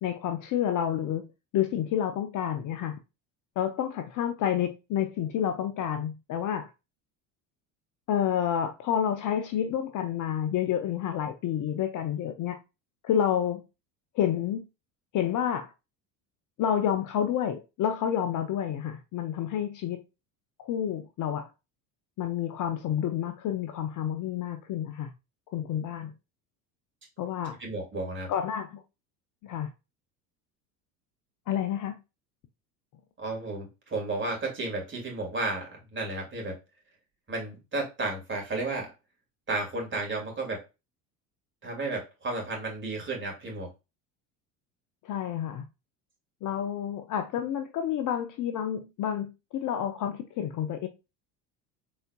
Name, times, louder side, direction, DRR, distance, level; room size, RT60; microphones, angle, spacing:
voice 1, 0.0-1.3 1.5-3.0 3.6-6.7 8.1-12.6 13.0-13.6 14.1-14.6 15.1-15.7 16.6-20.0 20.6-21.5 22.2-25.1 25.5-26.1 27.2-27.6 28.3-28.8 29.4-29.7 31.5-32.0 45.0-45.7 46.4-50.9, left 9 dB, 40° left, 0.6 m, -29 dB
voice 2, 27.6-28.3 33.2-36.6 37.3-38.9 39.5-40.6 41.6-43.7, right 2 dB, 25° right, 2.3 m, -33 dB
4.0 x 3.9 x 2.2 m
hypercardioid pair, 75°, 48 cm